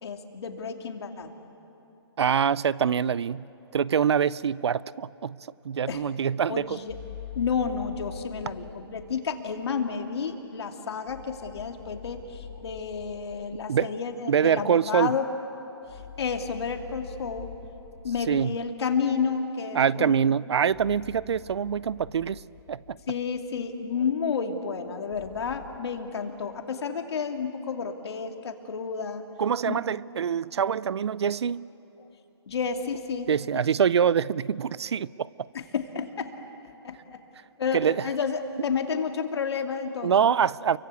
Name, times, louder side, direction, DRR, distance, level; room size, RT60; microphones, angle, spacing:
voice 1, 0.0-1.3 5.9-6.0 6.5-7.0 7.3-15.2 15.8-17.5 18.0-20.2 23.1-29.2 29.6-29.8 32.5-33.3 35.5-36.3 36.6-37.2 37.6-40.1, left 6 dB, 65° left, 5 dB, 2.6 m, -31 dB
voice 2, 2.2-3.5 3.7-5.4 5.6-6.8 13.7-13.9 14.3-15.1 18.3-18.5 19.7-22.4 22.7-23.0 29.4-31.7 33.3-35.3 37.7-37.9 40.0-40.8, right 7 dB, 70° right, 21 dB, 0.6 m, -24 dB
sound 1, 6.9-9.2 11.1-13.6 15.9-18.5 20.7-23.3 25.1-25.8, left 8 dB, 40° left, 2.2 m, -45 dB
29.5 x 24.0 x 8.3 m, 3.0 s
hypercardioid pair, 155°, 14 cm